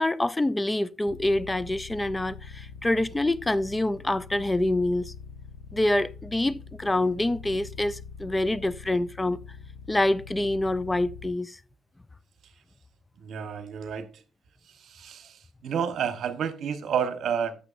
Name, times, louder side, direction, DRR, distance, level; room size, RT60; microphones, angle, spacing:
voice 1, 0.0-5.1 5.7-9.4 9.9-11.6, left 1 dB, 15° left, 0.3 m, -26 dB
sound 1, 1.1-11.3, left 5 dB, 60° left, 1.2 m, -44 dB
voice 2, 13.2-14.2 14.7-17.6, right 7 dB, 65° right, 1.1 m, -30 dB
10.5 x 7.0 x 2.5 m
cardioid pair, 90°, 0 cm